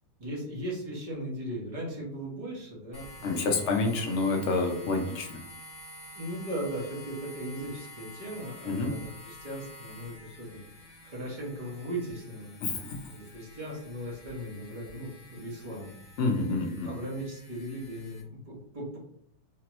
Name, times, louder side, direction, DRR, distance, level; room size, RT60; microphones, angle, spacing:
voice 1, 0.2-3.4 6.1-12.6 13.1-15.9 16.8-19.0, right 1 dB, 25° right, -5 dB, 1.0 m, -38 dB
sound 1, 2.9-18.2, left 1 dB, 15° left, 0.7 m, -49 dB
voice 2, 3.2-5.4 8.6-8.9 12.6-13.0 16.2-16.9, left 3 dB, 70° left, 2 dB, 0.6 m, -28 dB
3.4 x 2.9 x 3.0 m, 0.68 s
omnidirectional pair, 1.9 m